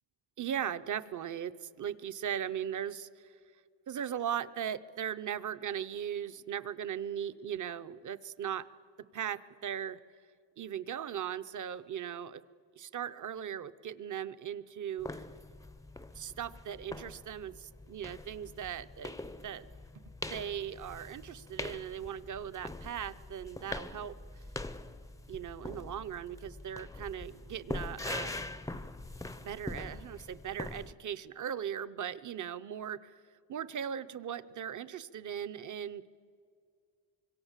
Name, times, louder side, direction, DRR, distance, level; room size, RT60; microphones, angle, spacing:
voice 1, 0.4-3.4 3.9-8.7 9.1-10.0 10.6-12.4 12.8-15.2 16.1-19.1 19.4-19.7 20.2-24.2 25.3-28.4 29.4-33.1 33.5-36.0, right 9 dB, 40° right, 14 dB, 0.7 m, -38 dB
sound 1, 15.0-30.9, left 2 dB, 5° left, 0.5 m, -43 dB
25.5 x 23.0 x 7.4 m, 2.3 s
cardioid pair, 160°, 46 cm